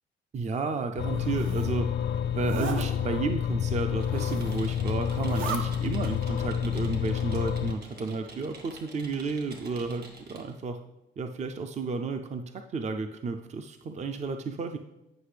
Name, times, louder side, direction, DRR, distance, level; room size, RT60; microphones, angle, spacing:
voice 1, 0.3-1.9 2.3-10.8 11.2-14.8, right 4 dB, 35° right, 7 dB, 0.5 m, -32 dB
sound 1, 1.0-7.7, left 9 dB, 65° left, 0.5 m, -29 dB
Zipper (clothing), 1.0-1.7 2.3-2.9 4.0-4.7 5.1-5.6, right 4 dB, 80° right, 1.1 m, -37 dB
Computer keyboard, 3.7-10.5, right 3 dB, 50° right, 1.7 m, -48 dB
9.8 x 5.7 x 3.3 m, 0.95 s
cardioid pair, 90°, 20 cm